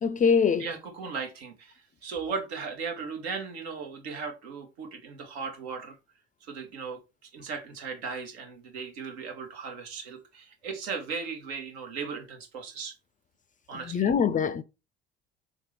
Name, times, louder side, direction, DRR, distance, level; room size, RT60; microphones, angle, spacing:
voice 1, 0.0-0.7 13.9-14.6, left 6 dB, 25° left, 0.4 m, -23 dB
voice 2, 0.6-6.0 6.4-7.0 7.3-12.9 13.7-14.1, right 5 dB, 75° right, 1.1 m, -37 dB
3.8 x 3.5 x 3.2 m
hypercardioid pair, 55°, 32 cm